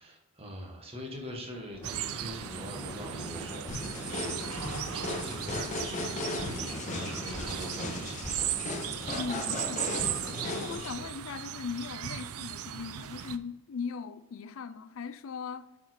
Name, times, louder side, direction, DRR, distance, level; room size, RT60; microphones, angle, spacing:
voice 1, 0.0-8.8 10.8-11.1, equal, 25° right, 1.3 m, -43 dB
sound 1, 1.7-10.8, equal, 10° left, 1.5 m, -43 dB
sound 2, 1.8-13.4, right 11 dB, 90° right, 0.5 m, -37 dB
sound 3, 3.7-10.9, left 2 dB, 35° left, 0.8 m, -37 dB
voice 2, 9.1-10.0 10.4-15.7, left 5 dB, 70° left, 0.4 m, -39 dB
8.5 x 4.9 x 4.3 m
head